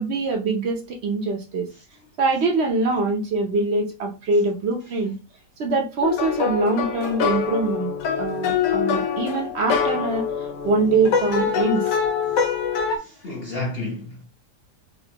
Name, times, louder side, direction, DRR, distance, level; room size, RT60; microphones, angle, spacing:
voice 1, 0.0-1.7 2.2-5.1 5.6-7.9 8.2-10.2 10.6-12.0, right 3 dB, 55° right, 0.7 m, -23 dB
sound 1, 6.0-13.0, left 7 dB, 80° left, 1.3 m, -24 dB
voice 2, 12.8-14.2, left 2 dB, 45° left, 0.9 m, -32 dB
4.2 x 2.5 x 2.8 m
omnidirectional pair, 1.8 m